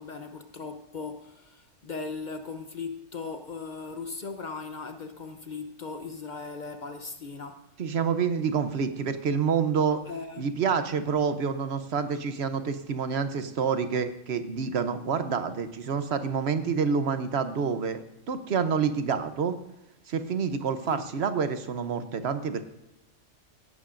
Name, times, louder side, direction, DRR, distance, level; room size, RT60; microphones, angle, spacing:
voice 1, 0.0-7.6 10.1-10.5 20.9-21.0, left 4 dB, 45° left, 0.8 m, -38 dB
voice 2, 7.8-10.0 10.4-18.0 18.3-19.6 20.1-22.6, right 6 dB, 65° right, 1.0 m, -28 dB
17.0 x 11.5 x 2.5 m
omnidirectional pair, 1.2 m